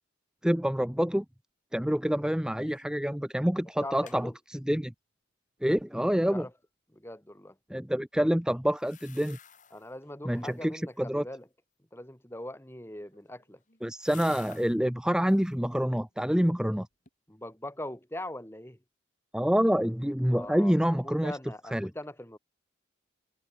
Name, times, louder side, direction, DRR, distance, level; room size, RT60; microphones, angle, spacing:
voice 1, 0.4-1.2 1.7-4.3 4.7-4.9 5.6-6.5 7.7-9.4 10.2-11.2 13.8-16.9 19.3-21.3 21.7-21.9, equal, 5° right, 0.6 m, -27 dB
sound 1, 2.6-3.0 3.3-3.4 3.7-4.2 8.7-9.9 10.3-10.8 12.8-14.8 15.2-15.6 16.1-16.7 17.1-17.2, left 9 dB, 40° left, 6.3 m, -54 dB
voice 2, 3.8-4.4 6.3-6.5 6.9-7.6 9.7-11.5 11.9-13.6 17.3-18.8 20.3-22.4, left 1 dB, 10° left, 1.9 m, -41 dB
head